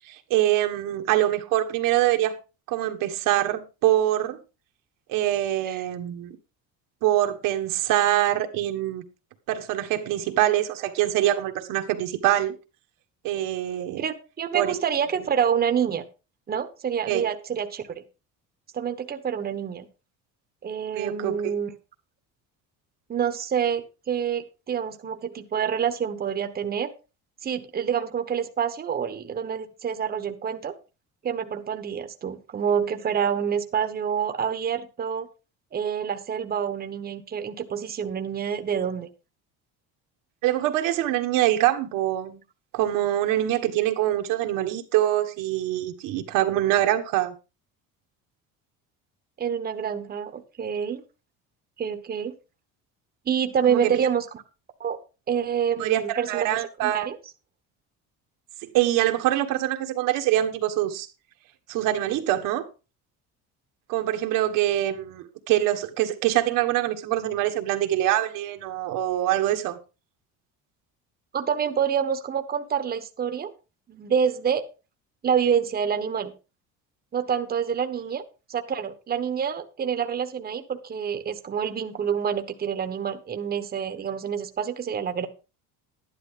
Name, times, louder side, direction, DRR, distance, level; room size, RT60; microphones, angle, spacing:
voice 1, 0.1-2.4 2.7-4.4 5.1-6.4 7.0-9.0 9.5-12.5 13.2-14.0 14.5-14.7 17.1-17.2 21.0-21.5 40.4-42.4 42.7-47.3 53.7-54.0 55.7-57.1 58.6-61.1 61.7-62.6 63.9-69.8, right 13 dB, 75° right, 1.8 m, -24 dB
voice 2, 14.0-16.0 16.5-18.0 18.7-19.9 20.6-21.7 23.1-26.9 27.4-30.7 31.2-35.3 35.7-39.1 49.4-51.0 51.8-52.3 53.2-54.2 54.8-55.0 55.3-57.2 71.3-73.5 73.9-74.6 75.2-76.3 77.1-78.2 78.5-85.3, right 7 dB, 30° right, 1.2 m, -27 dB
11.5 x 11.0 x 3.8 m
cardioid pair, 130°, 33 cm